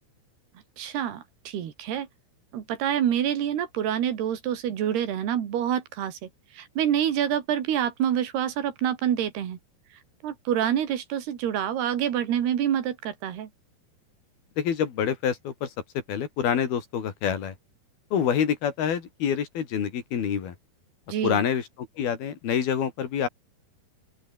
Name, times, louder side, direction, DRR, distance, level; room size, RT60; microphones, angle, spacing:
voice 1, 0.8-2.1 2.5-9.6 10.2-13.5 21.1-21.4, right 10 dB, 90° right, 4.5 m, -27 dB
voice 2, 14.6-17.5 18.1-20.5 21.2-23.3, left 8 dB, 75° left, 4.9 m, -27 dB
open air
omnidirectional pair, 4.5 m